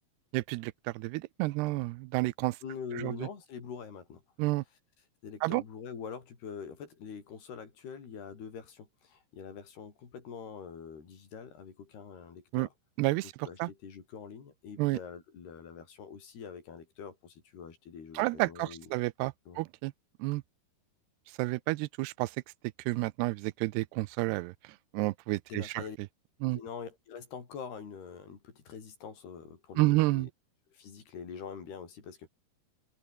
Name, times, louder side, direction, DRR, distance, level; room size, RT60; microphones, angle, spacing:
voice 1, 0.3-2.6 3.0-3.1 4.4-4.6 5.4-5.6 12.5-12.7 13.0-13.3 13.6-13.7 14.8-15.0 18.2-19.9 20.2-20.4 21.4-22.3 22.9-24.5 24.9-25.8 26.4-26.6 29.8-30.3, right 21 dB, 85° right, 2.7 m, -30 dB
voice 2, 2.6-4.2 5.2-12.7 13.2-18.9 19.5-19.6 25.5-26.0 26.4-30.3 30.7-32.3, left 6 dB, 75° left, 6.4 m, -44 dB
open air
omnidirectional pair, 4.6 m